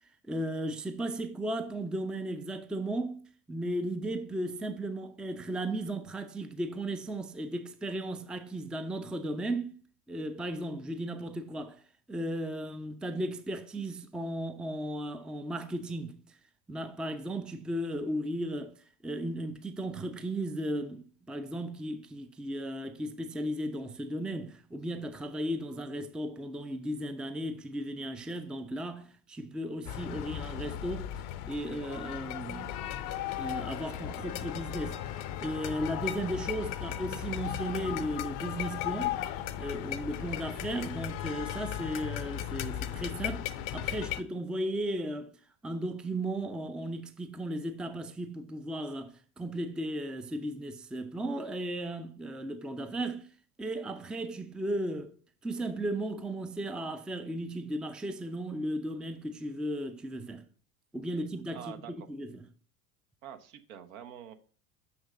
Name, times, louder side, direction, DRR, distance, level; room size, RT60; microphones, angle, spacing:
voice 1, 0.3-9.7 10.1-11.8 12.1-16.3 16.7-32.8 33.4-35.0 35.4-39.2 39.6-45.3 45.6-53.3 53.6-55.1 55.4-60.5 60.9-62.4, right 1 dB, ahead, 0.5 m, -35 dB
sound 1, 29.8-44.2, left 11 dB, 45° left, 0.7 m, -36 dB
sound 2, 32.5-41.6, left 5 dB, 85° left, 1.1 m, -54 dB
voice 2, 61.5-62.1 63.2-64.3, right 9 dB, 65° right, 1.0 m, -46 dB
6.4 x 6.0 x 3.8 m
figure-of-eight pair, 70°, 45 cm